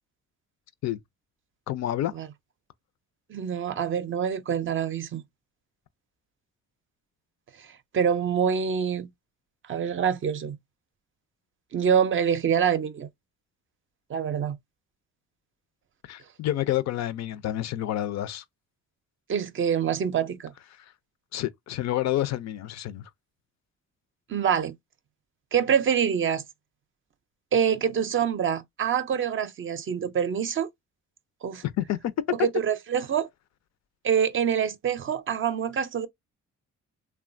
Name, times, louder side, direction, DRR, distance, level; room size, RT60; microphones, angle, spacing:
voice 1, 1.7-2.1 16.0-18.4 21.3-23.0 31.6-32.0, left 13 dB, 60° left, 0.4 m, -29 dB
voice 2, 3.3-5.2 7.6-7.7 7.9-9.1 9.7-10.6 11.7-13.1 14.1-14.6 19.3-20.5 24.3-24.7 25.5-26.4 27.5-30.7 31.4-31.6 32.3-33.3 34.0-36.1, right 8 dB, 40° right, 0.5 m, -25 dB
3.0 x 2.1 x 2.5 m
cardioid pair, 90°, 30 cm